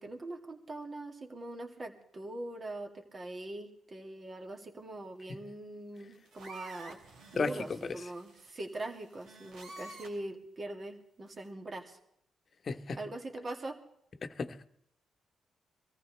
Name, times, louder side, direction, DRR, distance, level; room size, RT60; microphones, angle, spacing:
voice 1, 0.0-7.0 7.3-12.0 13.0-13.8, right 2 dB, 35° right, 2.4 m, -42 dB
sound 1, 6.0-10.3 11.3-11.5, right 2 dB, 85° right, 3.2 m, -51 dB
voice 2, 7.3-8.0 12.6-13.0 14.2-14.7, left 4 dB, 45° left, 1.1 m, -35 dB
24.0 x 14.5 x 3.3 m
cardioid pair, 70°, 0 cm